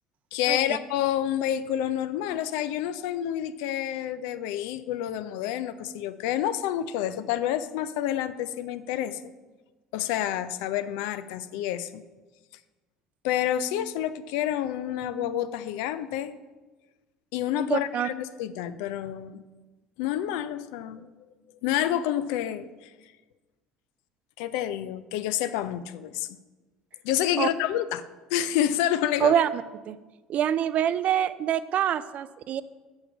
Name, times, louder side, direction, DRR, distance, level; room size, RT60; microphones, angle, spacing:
voice 1, 0.3-9.2 9.9-12.0 13.2-16.3 17.3-19.4 20.0-21.0 21.6-22.9 24.4-26.3 27.0-28.0 28.3-29.4, left 11 dB, 75° left, 13 dB, 0.4 m, -28 dB
voice 2, 17.5-18.1 27.4-27.5 29.2-30.0 30.3-32.6, right 10 dB, 50° right, 15 dB, 0.4 m, -25 dB
7.1 x 5.6 x 5.4 m, 1.2 s
hypercardioid pair, 65°, 3 cm